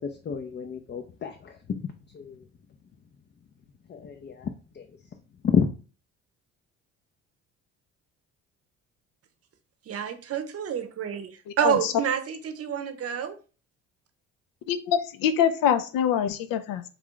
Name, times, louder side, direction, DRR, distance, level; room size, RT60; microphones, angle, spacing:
voice 1, 0.0-1.5 2.1-2.4 3.9-4.5 4.8-4.9 5.5-5.7, left 6 dB, 30° left, 5 dB, 0.5 m, -29 dB
voice 2, 9.9-11.3 11.6-13.4, right 8 dB, 45° right, 9 dB, 0.7 m, -28 dB
voice 3, 11.5-11.9 14.7-16.8, left 9 dB, 75° left, 11 dB, 0.6 m, -25 dB
3.3 x 2.4 x 3.7 m, 0.36 s
supercardioid pair, 70°, 34 cm